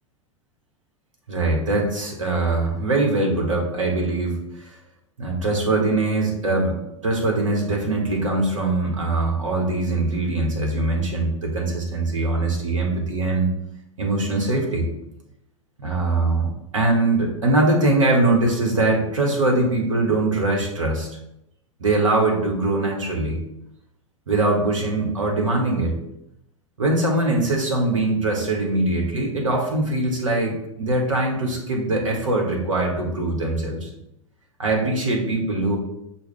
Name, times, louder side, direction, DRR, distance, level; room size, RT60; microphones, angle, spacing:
voice 1, 1.3-4.7 5.2-6.8 7.0-13.5 14.0-14.9 15.8-21.1 21.8-23.4 24.3-25.9 26.8-33.9 34.6-35.8, right 2 dB, 70° right, 0 dB, 1.1 m, -22 dB
6.2 x 2.3 x 3.6 m, 0.82 s
figure-of-eight pair, 90°, 17 cm